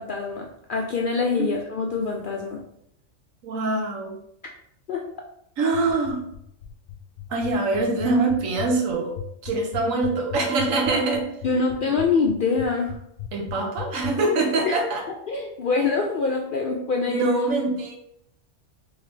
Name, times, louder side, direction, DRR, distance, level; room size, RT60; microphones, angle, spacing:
voice 1, 0.0-2.6 4.9-5.0 11.4-13.0 14.6-14.7 15.1-17.2, left 4 dB, 65° left, 0 dB, 0.5 m, -25 dB
voice 2, 3.4-4.2 5.6-6.2 7.3-9.1 9.4-11.3 11.9-12.0 13.3-15.0 17.1-18.0, right 3 dB, 85° right, 2 dB, 1.2 m, -24 dB
sound 1, 5.7-14.1, left 12 dB, 90° left, 1.0 m, -36 dB
3.8 x 3.5 x 3.2 m, 0.75 s
omnidirectional pair, 1.3 m